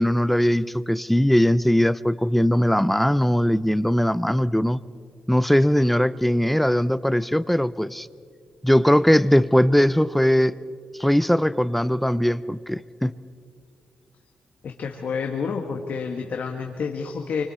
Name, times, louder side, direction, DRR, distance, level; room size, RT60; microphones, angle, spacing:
voice 1, 0.0-4.8 5.3-8.1 8.6-10.5 11.0-13.1, equal, 5° left, 17 dB, 0.5 m, -20 dB
voice 2, 14.6-17.4, left 5 dB, 65° left, 3 dB, 1.7 m, -29 dB
28.5 x 25.0 x 4.3 m, 2.2 s
cardioid pair, 85°, 3 cm